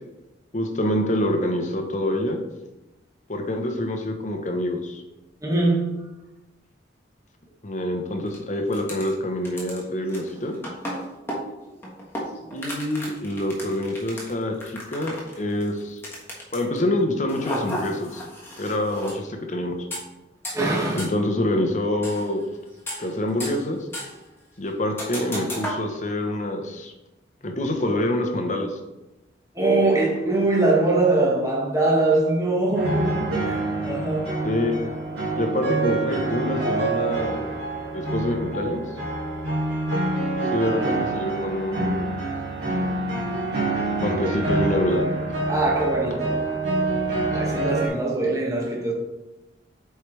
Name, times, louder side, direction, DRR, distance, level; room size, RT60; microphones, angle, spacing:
voice 1, 0.5-2.4 3.3-5.0 7.6-10.6 12.5-16.0 16.5-18.2 18.6-19.7 20.9-22.4 23.0-23.8 24.6-26.9 27.4-28.8 34.4-34.8 35.4-37.5 37.9-38.8 40.5-42.1 44.0-45.0, left 1 dB, 40° left, 0.9 m, -26 dB
voice 2, 5.4-6.0 11.0-11.1 12.4-12.7 20.5-21.1 29.5-34.3 45.5-46.3 46.9-47.0 47.3-48.9, right 2 dB, 20° right, 1.4 m, -23 dB
sound 1, 8.3-8.4 8.7-9.1 9.4-16.8 17.3-19.2 19.9-20.0 20.4-20.6 21.0-21.1 22.0-22.4 22.7-23.7 23.9-24.2 25.0-25.8, equal, 15° left, 1.4 m, -34 dB
sound 2, 32.8-47.9, right 2 dB, 75° right, 2.1 m, -26 dB
8.0 x 4.6 x 3.3 m
head